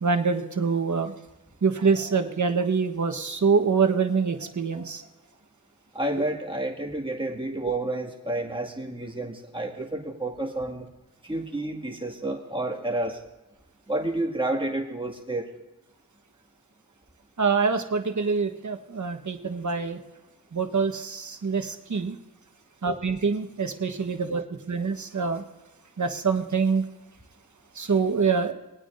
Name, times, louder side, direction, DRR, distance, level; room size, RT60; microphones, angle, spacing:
voice 1, 0.0-1.1 1.6-5.0 17.4-20.0 20.5-22.1 22.8-24.4 24.7-25.4 26.0-26.8 27.7-28.5, right 5 dB, 55° right, 6 dB, 1.4 m, -25 dB
voice 2, 5.9-10.9 11.2-13.2 13.9-15.5, right 2 dB, 15° right, -1 dB, 2.2 m, -30 dB
22.0 x 9.0 x 2.7 m, 1.0 s
cardioid pair, 45°, 34 cm